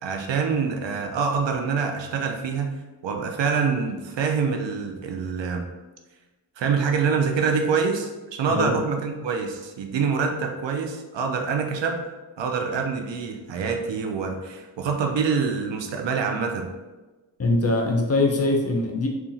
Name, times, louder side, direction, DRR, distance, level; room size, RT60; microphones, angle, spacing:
voice 1, 0.0-2.7 3.0-5.7 6.6-12.0 12.4-16.7, right 5 dB, 85° right, 3 dB, 0.5 m, -25 dB
voice 2, 8.5-8.8 17.4-19.1, left 2 dB, 35° left, 1 dB, 0.6 m, -22 dB
2.8 x 2.4 x 2.6 m, 1.2 s
cardioid pair, 45°, 43 cm